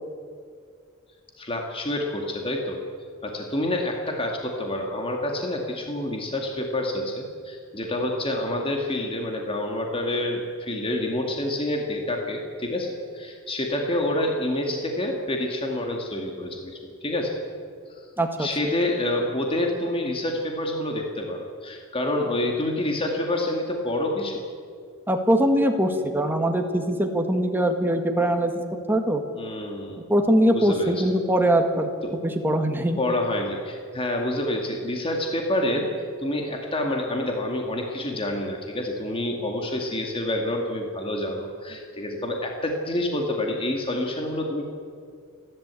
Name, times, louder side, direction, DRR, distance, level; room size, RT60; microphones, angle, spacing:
voice 1, 1.4-2.8 3.2-17.4 18.0-18.1 18.4-24.4 29.3-30.0 30.5-30.9 32.0-32.2 33.0-44.7, left 1 dB, 25° left, 1 dB, 2.3 m, -28 dB
voice 2, 18.2-18.5 25.1-28.5 28.9-29.2 30.1-31.9 32.2-33.0, right 1 dB, 10° right, 4 dB, 1.8 m, -22 dB
29.5 x 12.0 x 8.4 m, 2.2 s
head